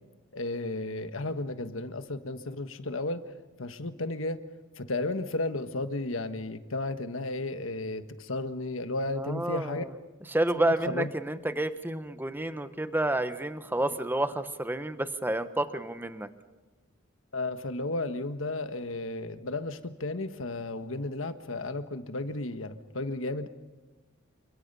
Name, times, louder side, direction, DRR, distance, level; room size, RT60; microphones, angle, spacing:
voice 1, 0.3-4.4 4.8-9.9 10.5-11.1 17.3-23.5, left 2 dB, 70° left, 9 dB, 1.4 m, -33 dB
voice 2, 9.2-9.9 10.3-16.3, right 1 dB, 10° right, 10 dB, 1.1 m, -30 dB
29.0 x 25.0 x 5.5 m, 1.2 s
head